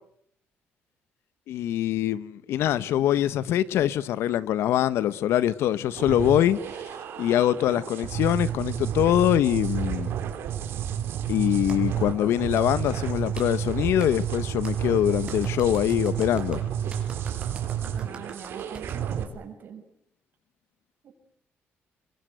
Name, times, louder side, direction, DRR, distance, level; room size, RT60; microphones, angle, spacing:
voice 1, 1.5-6.6 7.2-10.2 11.3-16.6, left 11 dB, 80° left, 1.1 m, -24 dB
sound 1, 5.9-19.2, right 9 dB, 65° right, 3.8 m, -31 dB
Clapping, 11.7-11.8 12.5-12.7 13.3-13.5 14.0-14.1 14.6-14.7 15.3-19.0, right 5 dB, 25° right, 5.1 m, -42 dB
voice 2, 17.9-19.8 21.0-21.1, right 7 dB, 50° right, 6.4 m, -43 dB
28.0 x 22.5 x 8.1 m
cardioid pair, 170°, 4 cm